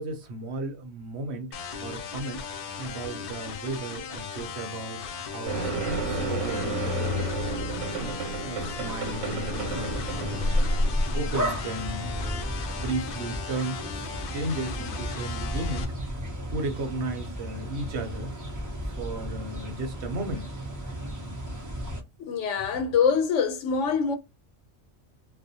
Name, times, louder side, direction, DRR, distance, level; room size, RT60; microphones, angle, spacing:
voice 1, 0.0-1.5 1.8-2.5 2.8-5.6 6.0-8.2 8.4-10.7 11.1-12.4 12.7-15.9 16.5-18.4 18.8-20.5, right 2 dB, 65° right, 0.9 m, -35 dB
sound 1, 1.5-15.8, left 6 dB, 60° left, 0.6 m, -38 dB
sound 2, 5.5-11.5, equal, 85° right, 1.2 m, -29 dB
sound 3, 9.6-22.0, equal, 25° right, 0.4 m, -35 dB
voice 2, 22.2-24.2, left 6 dB, 80° left, 0.9 m, -24 dB
2.4 x 2.1 x 2.6 m
omnidirectional pair, 1.3 m